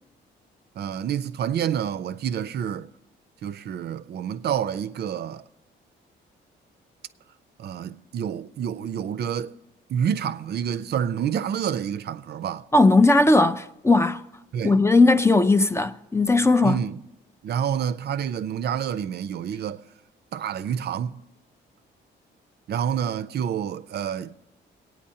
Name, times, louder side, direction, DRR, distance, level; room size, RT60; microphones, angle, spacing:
voice 1, 0.8-2.9 3.4-5.5 7.6-9.6 9.9-12.7 14.5-14.8 16.6-17.0 17.4-19.8 20.3-21.2 22.7-24.3, right 8 dB, 55° right, 0.4 m, -28 dB
voice 2, 12.7-14.2 14.6-16.8, left 2 dB, 15° left, 0.4 m, -18 dB
21.5 x 9.1 x 2.8 m
cardioid pair, 90°, 20 cm